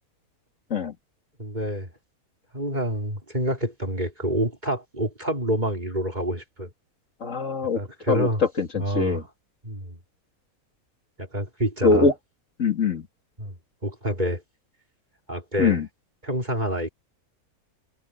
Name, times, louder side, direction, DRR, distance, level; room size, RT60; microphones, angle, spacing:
voice 1, 1.4-1.9 2.5-6.7 7.8-8.4 8.8-9.3 9.6-10.0 11.2-12.1 13.4-13.6 13.8-14.4 15.3-15.8 16.2-16.9, equal, 30° right, 5.2 m, -27 dB
voice 2, 7.2-7.8 8.1-8.3 8.6-9.2 11.8-12.1 12.6-13.1 15.6-15.9, left 4 dB, 55° left, 2.7 m, -22 dB
omnidirectional pair, 1.6 m